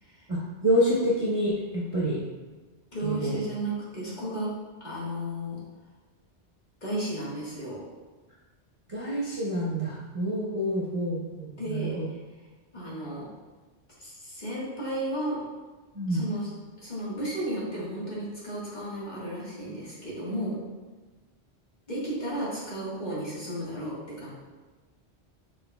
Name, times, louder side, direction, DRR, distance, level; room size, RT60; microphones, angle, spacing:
voice 1, 0.3-2.2 3.0-3.4 8.9-12.1 15.9-16.2, equal, 35° right, -6 dB, 0.6 m, -27 dB
voice 2, 2.9-4.5 4.8-5.6 6.8-7.8 11.6-12.2 12.7-13.2 14.0-15.4 16.1-16.5 16.8-20.6 21.9-24.3, right 1 dB, 40° left, -8 dB, 1.5 m, -33 dB
6.0 x 3.9 x 2.2 m, 1.3 s
omnidirectional pair, 1.2 m